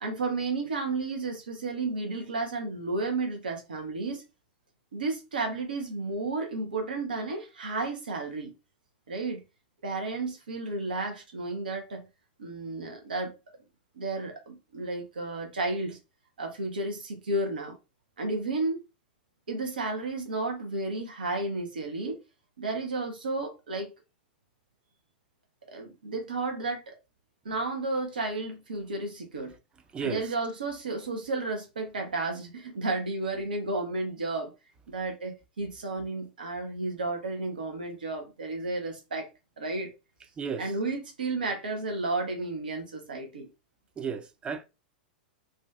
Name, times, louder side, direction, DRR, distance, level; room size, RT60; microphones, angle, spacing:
voice 1, 0.0-4.2 4.9-8.5 9.1-9.4 9.8-12.0 12.4-13.3 14.0-16.0 16.4-17.7 18.2-18.8 19.5-22.2 22.6-23.9 25.7-27.0 27.4-29.6 30.0-34.5 34.9-39.3 39.6-39.9 40.6-43.5, right 3 dB, 80° right, 0.7 m, -32 dB
voice 2, 44.0-44.6, right 6 dB, 20° right, 0.4 m, -33 dB
2.5 x 2.2 x 2.3 m
hypercardioid pair, 100°, 5 cm